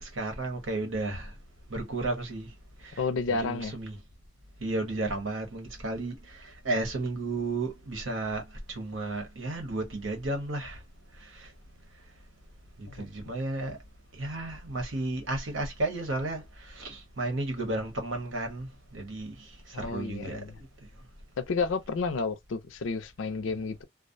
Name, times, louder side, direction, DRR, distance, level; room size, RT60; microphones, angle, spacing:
voice 1, 0.0-1.3 1.7-2.5 2.9-3.0 3.3-4.0 4.6-6.1 6.6-8.4 8.7-10.8 12.8-13.8 14.2-19.3 19.7-20.4, right 2 dB, 80° right, 1.0 m, -33 dB
voice 2, 3.0-3.8 12.9-13.1 19.7-20.6 21.4-23.8, left 4 dB, 75° left, 0.4 m, -31 dB
2.4 x 2.1 x 2.5 m
head